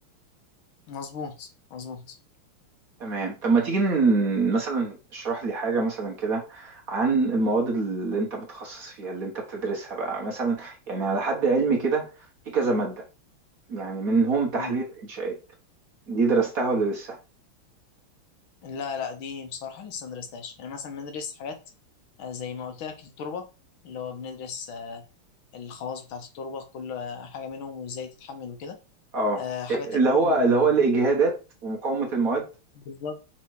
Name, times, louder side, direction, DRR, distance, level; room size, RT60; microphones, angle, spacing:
voice 1, 0.9-2.2 14.6-14.8 18.6-21.6 22.2-23.5 23.8-25.0 25.5-28.8 29.4-30.7 32.8-33.2, left 6 dB, 70° left, 1.7 m, -36 dB
voice 2, 3.0-12.1 12.4-13.0 13.7-15.4 16.1-17.2 29.1-29.4 29.7-32.5, right 3 dB, 45° right, 1.5 m, -25 dB
5.7 x 3.7 x 4.8 m
omnidirectional pair, 2.4 m